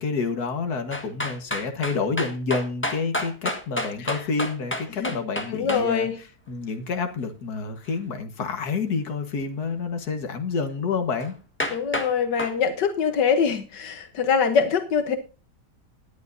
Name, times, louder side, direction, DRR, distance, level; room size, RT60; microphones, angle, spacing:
voice 1, 0.0-6.1 6.5-11.4, left 4 dB, 65° left, 6 dB, 2.0 m, -28 dB
sound 1, 0.9-5.8 11.2-11.3 11.6-12.1 12.4-12.5, left 1 dB, 10° left, 1.3 m, -29 dB
voice 2, 5.5-6.2 11.7-15.2, left 6 dB, 85° left, 7 dB, 1.7 m, -24 dB
18.5 x 11.0 x 2.7 m, 0.30 s
omnidirectional pair, 1.8 m